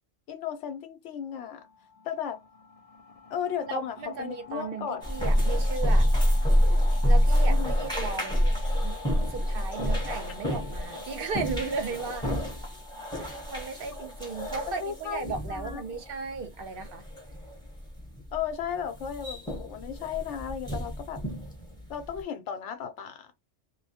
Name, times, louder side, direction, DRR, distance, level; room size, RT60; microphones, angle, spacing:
voice 1, 0.3-1.6 2.0-2.4 3.3-5.1 7.5-7.7 14.8-15.8 18.3-21.2 21.9-23.3, left 8 dB, 85° left, 0.9 m, -35 dB
sound 1, 1.3-14.7, left 5 dB, 70° left, 0.3 m, -48 dB
voice 2, 3.7-6.1 7.1-8.9 9.3-12.3 13.2-17.0, right 4 dB, 60° right, 0.7 m, -36 dB
sound 2, 5.0-22.2, equal, 5° left, 0.8 m, -28 dB
2.2 x 2.2 x 2.7 m
omnidirectional pair, 1.2 m